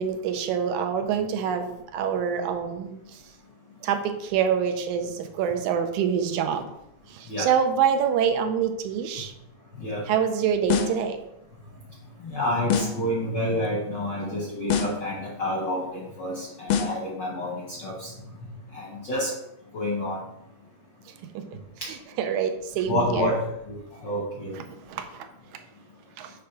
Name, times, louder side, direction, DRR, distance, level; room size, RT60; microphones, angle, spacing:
voice 1, 0.0-3.2 3.8-6.7 7.1-9.3 10.1-11.2 21.3-21.6 21.9-23.4 24.5-24.6 24.9-25.3 26.2-26.3, right 7 dB, 80° right, 6 dB, 2.0 m, -26 dB
sound 1, 10.7-11.1 12.7-13.1 14.7-15.1 16.7-17.1, left 7 dB, 75° left, 1.5 m, -25 dB
voice 2, 12.2-18.1 18.7-19.3 19.7-20.2 21.8-21.9 22.9-23.4 23.7-24.6, left 1 dB, 60° left, -3 dB, 1.2 m, -29 dB
7.5 x 3.6 x 5.7 m, 0.83 s
omnidirectional pair, 3.7 m